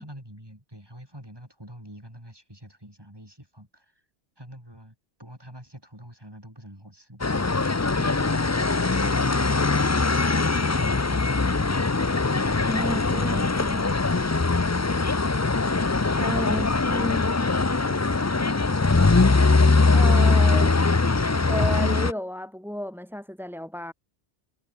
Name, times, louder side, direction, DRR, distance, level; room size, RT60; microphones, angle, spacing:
voice 1, 0.0-4.0 4.4-11.7, equal, 20° right, 7.3 m, -46 dB
sound 1, 7.2-22.1, left 3 dB, 20° left, 0.4 m, -21 dB
voice 2, 12.7-13.9 16.2-17.3 19.9-20.8 21.5-23.9, equal, ahead, 3.9 m, -32 dB
omnidirectional pair, 1.2 m